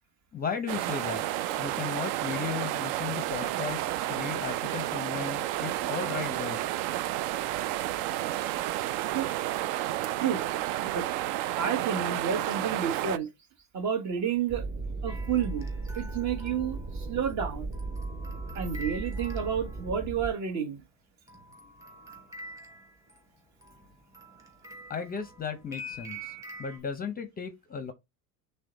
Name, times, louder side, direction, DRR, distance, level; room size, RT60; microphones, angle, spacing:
voice 1, 0.3-1.2 1.6-6.6 24.9-27.9, left 6 dB, 20° left, 0.6 m, -36 dB
sound 1, 0.7-13.2, right 14 dB, 65° right, 0.5 m, -31 dB
voice 2, 11.6-13.3 13.7-14.6 15.0-15.7 15.9-17.7 18.5-20.8, right 7 dB, 45° right, 1.2 m, -30 dB
sound 2, 14.5-20.3, right 3 dB, 25° right, 0.6 m, -36 dB
sound 3, 15.1-20.1 21.3-26.8, equal, 10° right, 1.1 m, -46 dB
6.2 x 2.2 x 3.8 m
supercardioid pair, 120°, 41 cm